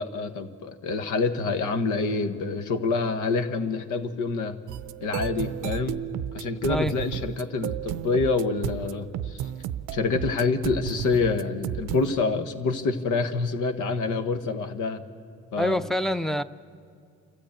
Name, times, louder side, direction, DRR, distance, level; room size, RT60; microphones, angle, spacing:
voice 1, 0.0-4.6 5.0-6.0 6.3-9.4 9.9-15.0 15.5-15.8, left 4 dB, 80° left, 8 dB, 1.3 m, -27 dB
sound 1, 4.7-12.1, right 12 dB, 90° right, 0.6 m, -33 dB
voice 2, 15.6-16.4, left 1 dB, ahead, 12 dB, 0.6 m, -25 dB
29.0 x 13.5 x 8.7 m, 2.3 s
cardioid pair, 90°, 30 cm